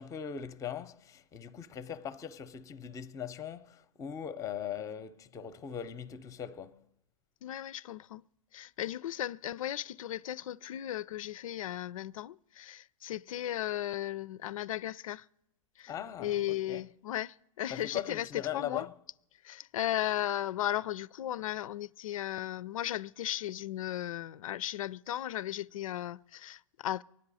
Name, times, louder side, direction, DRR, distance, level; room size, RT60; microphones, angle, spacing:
voice 1, 0.0-6.9 15.9-16.9 17.7-19.0, left 9 dB, 20° left, 0.7 m, -40 dB
voice 2, 7.4-8.3 8.5-15.3 15.8-15.9 16.2-18.9 19.4-27.0, left 12 dB, 75° left, 0.4 m, -36 dB
24.0 x 9.7 x 4.1 m
hypercardioid pair, 115°, 17 cm